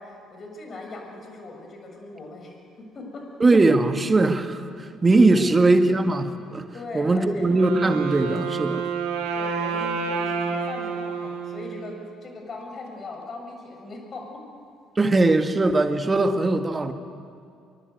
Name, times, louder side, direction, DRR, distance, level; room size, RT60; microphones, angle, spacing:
voice 1, 0.0-2.5 2.9-3.4 5.3-5.6 6.7-7.5 9.3-14.4, left 2 dB, 40° left, 3 dB, 7.1 m, -39 dB
voice 2, 3.4-6.7 6.9-8.9 15.0-16.9, right 2 dB, 25° right, 7 dB, 2.1 m, -20 dB
Wind instrument woodwind instrument, 7.4-12.3, right 5 dB, 70° right, 3.0 m, -29 dB
24.5 x 23.5 x 8.2 m, 2.4 s
figure-of-eight pair, 50°, 0 cm